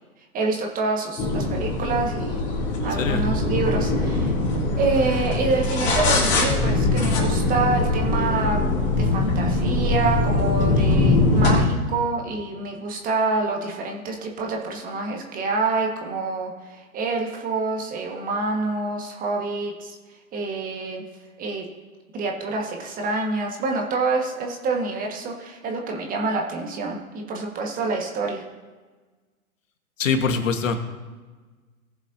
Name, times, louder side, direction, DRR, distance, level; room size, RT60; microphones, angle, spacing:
voice 1, 0.3-2.4 2.8-4.3 4.8-8.6 8.9-20.0 20.3-21.0 21.4-21.6 22.1-28.4, right 3 dB, 20° right, 1 dB, 1.5 m, -27 dB
sound 1, 1.2-11.6, left 2 dB, 25° left, 2.8 m, -22 dB
voice 2, 2.9-3.3 30.0-30.8, left 5 dB, 60° left, 7 dB, 1.5 m, -23 dB
19.0 x 7.0 x 2.7 m, 1.3 s
figure-of-eight pair, 120°, 43 cm